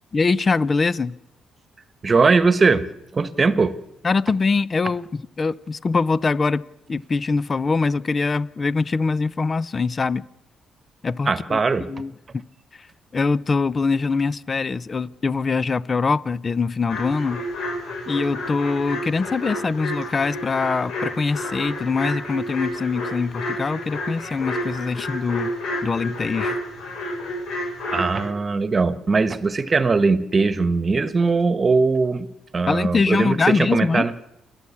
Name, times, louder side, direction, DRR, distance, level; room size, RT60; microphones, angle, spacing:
voice 1, 0.1-1.2 4.0-6.6 6.9-10.2 11.0-11.6 11.9-12.4 12.8-12.9 13.1-17.4 18.1-25.5 25.8-26.6 32.7-34.1, left 4 dB, 35° left, 21 dB, 0.6 m, -23 dB
voice 2, 2.0-2.8 3.1-3.7 11.2-11.9 27.9-32.3 32.5-34.1, right 4 dB, 30° right, 14 dB, 1.3 m, -20 dB
sound 1, 16.9-28.3, left 1 dB, 75° left, 7.6 m, -30 dB
29.0 x 11.0 x 8.5 m, 0.92 s
cardioid pair, 90°, 0 cm